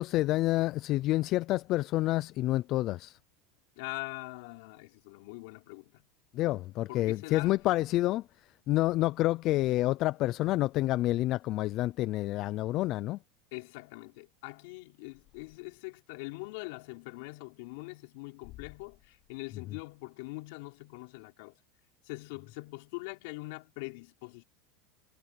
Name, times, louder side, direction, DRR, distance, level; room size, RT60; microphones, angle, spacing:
voice 1, 0.0-3.2 6.3-8.2 8.7-13.2, left 16 dB, 35° left, 0.4 m, -28 dB
voice 2, 3.8-6.0 6.9-7.6 13.5-21.6 22.0-24.4, left 26 dB, 60° left, 5.3 m, -43 dB
supercardioid pair, 170°, 0 cm